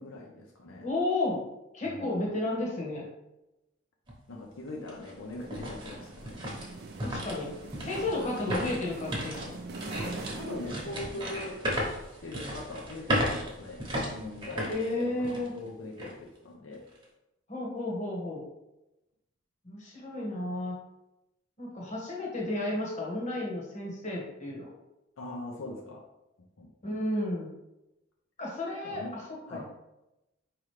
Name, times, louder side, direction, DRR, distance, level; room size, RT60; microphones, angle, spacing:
voice 1, 0.0-0.9 1.8-2.3 4.3-6.7 7.8-7.9 10.0-16.9 25.2-26.1 26.6-27.0 28.8-29.2 29.5-29.7, left 2 dB, 75° left, 0 dB, 0.6 m, -42 dB
voice 2, 0.8-1.4 1.7-3.1 7.0-7.5 7.8-9.5 14.6-15.5 17.5-18.5 19.6-20.7 21.6-24.7 26.8-27.5 28.4-29.6, left 2 dB, 35° left, -3 dB, 1.1 m, -32 dB
sound 1, 4.1-4.2 4.7-15.6 16.0-16.1 16.7-17.0, equal, 25° right, 0.9 m, -35 dB
sound 2, 5.3-11.8, right 3 dB, 50° right, 0.4 m, -44 dB
4.9 x 3.0 x 3.2 m, 0.93 s
head